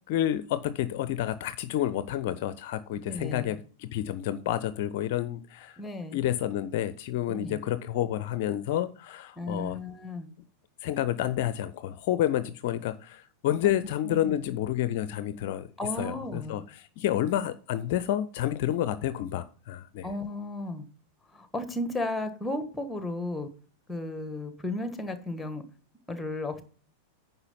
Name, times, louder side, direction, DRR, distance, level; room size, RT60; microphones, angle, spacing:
voice 1, 0.1-5.8 6.1-9.8 10.8-15.7 16.0-20.1, left 12 dB, 50° left, 14 dB, 0.5 m, -29 dB
voice 2, 3.1-3.6 5.8-6.2 7.3-7.6 9.4-10.3 13.6-13.8 14.0-14.3 15.8-16.6 20.0-20.9 21.3-23.5 23.9-25.6 26.1-26.6, left 2 dB, 5° left, 9 dB, 1.5 m, -34 dB
9.7 x 5.6 x 5.6 m, 0.41 s
figure-of-eight pair, 90°, 0 cm